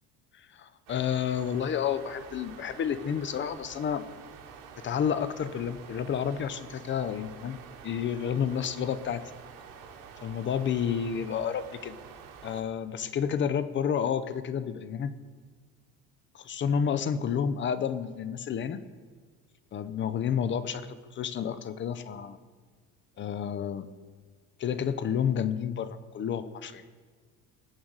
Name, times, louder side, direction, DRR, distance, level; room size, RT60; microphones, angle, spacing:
voice 1, 0.5-4.1 4.8-7.6 7.8-9.3 10.2-12.0 12.4-15.1 16.3-18.8 19.7-22.4 23.2-23.9 24.6-26.8, left 8 dB, 35° left, 13 dB, 0.7 m, -30 dB
sound 1, 0.9-12.6, right 7 dB, 65° right, 3.1 m, -48 dB
19.0 x 7.9 x 4.0 m, 1.5 s
cardioid pair, 120°, 35 cm